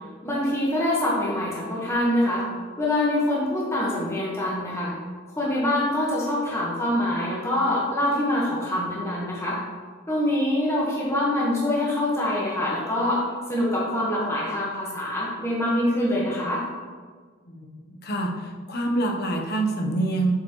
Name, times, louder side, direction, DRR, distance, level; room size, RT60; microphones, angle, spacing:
voice 1, 0.2-2.4 2.8-4.9 5.4-9.6 10.1-13.2 13.5-16.6, left 1 dB, 15° left, -6 dB, 1.3 m, -25 dB
voice 2, 17.5-20.3, right 2 dB, 55° left, 2 dB, 1.0 m, -26 dB
7.9 x 5.3 x 3.1 m, 1.5 s
head